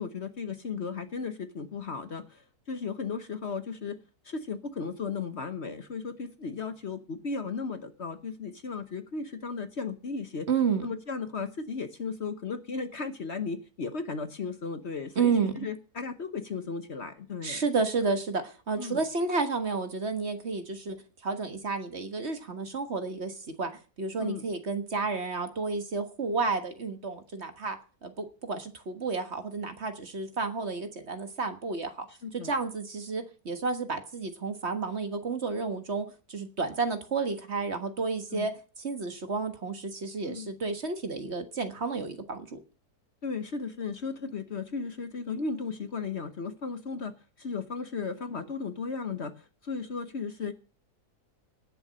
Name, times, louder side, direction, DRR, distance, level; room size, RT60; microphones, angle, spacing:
voice 1, 0.0-4.0 4.2-10.5 10.8-17.6 18.8-19.0 24.2-24.4 32.1-32.5 38.3-38.5 40.3-40.5 43.2-50.5, left 5 dB, 50° left, 9 dB, 1.2 m, -35 dB
voice 2, 10.5-10.8 15.2-15.7 17.4-21.0 21.2-23.7 24.0-27.8 28.0-32.1 32.3-38.5 38.8-42.6, right 4 dB, 45° right, 7 dB, 1.7 m, -31 dB
18.0 x 7.1 x 6.3 m, 0.37 s
omnidirectional pair, 1.6 m